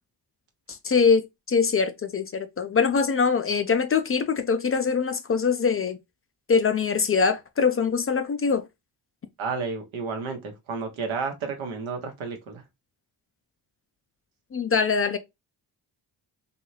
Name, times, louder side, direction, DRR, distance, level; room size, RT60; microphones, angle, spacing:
voice 1, 0.7-6.0 6.5-8.6 14.5-15.2, left 5 dB, 30° left, 0.4 m, -23 dB
voice 2, 9.4-12.6, right 5 dB, 80° right, 0.9 m, -31 dB
2.7 x 2.3 x 3.0 m
supercardioid pair, 45°, 47 cm